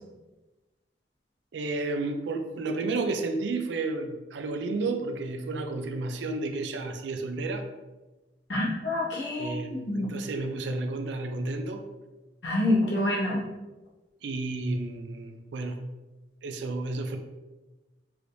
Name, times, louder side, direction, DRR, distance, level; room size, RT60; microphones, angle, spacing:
voice 1, 1.5-7.6 9.4-11.8 14.2-15.8 16.4-17.2, right 3 dB, 75° right, 5 dB, 0.4 m, -31 dB
voice 2, 8.5-10.1 12.4-13.4, left 1 dB, 75° left, -5 dB, 1.0 m, -27 dB
4.7 x 2.6 x 3.2 m, 1.1 s
head